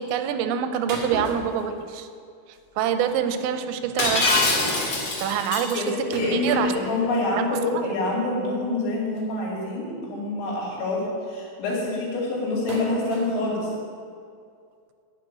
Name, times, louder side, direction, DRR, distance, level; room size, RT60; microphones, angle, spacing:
voice 1, 0.0-2.1 2.8-4.4 5.2-6.7 7.3-7.9, right 8 dB, 90° right, 9 dB, 3.0 m, -26 dB
sound 1, 0.9-2.2 2.5-2.8 3.1-3.2 3.7-3.8 4.0-4.2 6.1-7.1 7.8-7.9 9.1-9.2 10.1-10.2 10.4-10.7 12.7-13.4, right 1 dB, 55° right, 3.6 m, -36 dB
Shatter, 4.0-5.7, left 2 dB, 45° left, 1.8 m, -23 dB
voice 2, 5.7-13.7, left 2 dB, 80° left, -4 dB, 5.1 m, -26 dB
10.0 x 6.7 x 8.9 m, 2.3 s
omnidirectional pair, 5.3 m